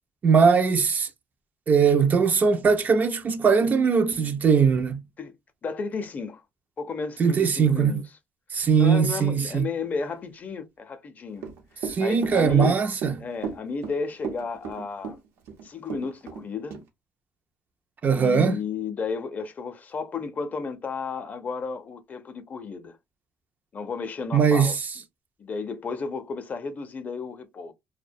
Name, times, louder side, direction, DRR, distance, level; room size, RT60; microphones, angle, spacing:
voice 1, 0.2-1.1 1.7-5.0 7.2-7.9 8.5-9.7 11.8-13.2 18.0-18.6 24.3-24.7, right 6 dB, 40° right, 0.4 m, -20 dB
voice 2, 5.6-6.4 6.8-8.0 8.8-11.5 11.7-12.8 13.2-15.2 15.6-16.8 18.1-23.0 23.7-24.7 25.4-27.7, left 5 dB, 40° left, 0.5 m, -33 dB
Run / Walk footsteps, 11.3-16.4 16.7-16.8, right 6 dB, 75° right, 0.7 m, -34 dB
2.3 x 2.1 x 2.6 m
cardioid pair, 95°, 4 cm